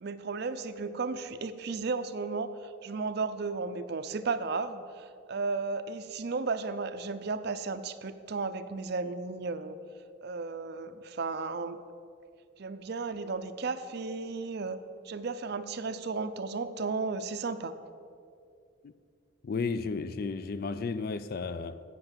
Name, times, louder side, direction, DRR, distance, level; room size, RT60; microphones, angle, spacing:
voice 1, 0.0-9.8 10.2-11.8 12.6-14.8 15.0-17.7, right 4 dB, 50° right, 0.5 m, -34 dB
voice 2, 19.4-21.8, left 4 dB, 45° left, 0.3 m, -33 dB
8.0 x 7.7 x 7.3 m
head